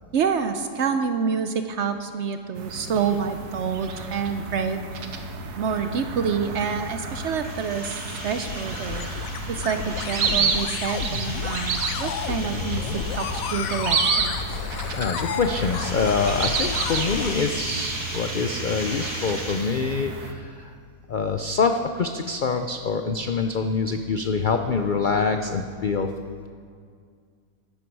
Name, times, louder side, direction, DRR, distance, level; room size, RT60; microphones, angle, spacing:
voice 1, 0.1-4.8 5.6-9.1 9.5-14.4, right 6 dB, 60° right, 8 dB, 0.8 m, -27 dB
sound 1, 2.5-20.3, right 5 dB, 90° right, 1.5 m, -31 dB
sound 2, 6.4-14.2 15.6-20.1, equal, 25° left, 3.3 m, -36 dB
sound 3, 7.7-17.4, left 8 dB, 70° left, 1.0 m, -32 dB
voice 2, 15.0-20.7 21.1-26.1, left 4 dB, 90° left, 6 dB, 0.4 m, -25 dB
14.0 x 11.5 x 4.7 m, 2.1 s
omnidirectional pair, 1.6 m